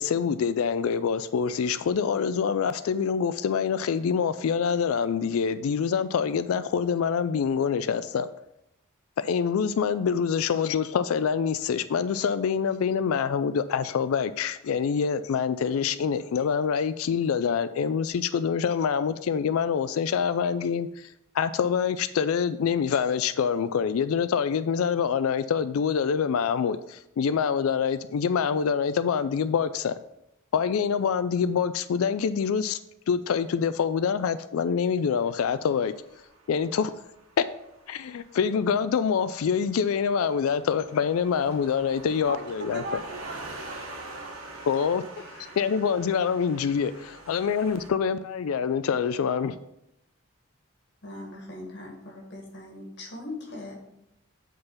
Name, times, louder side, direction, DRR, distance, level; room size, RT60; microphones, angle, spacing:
voice 1, 0.0-8.3 9.2-21.1 21.3-29.9 30.5-32.8 33.1-35.9 36.5-36.9 37.4-37.5 37.9-42.8 44.7-45.0 45.6-49.6, left 6 dB, 90° left, 0.4 m, -25 dB
sound 1, 35.2-47.9, right 2 dB, 90° right, 1.5 m, -45 dB
voice 2, 42.3-44.4, right 2 dB, 50° right, 0.9 m, -39 dB
voice 3, 45.2-45.5 51.0-53.7, left 2 dB, 55° left, 1.9 m, -41 dB
7.8 x 3.9 x 5.6 m
head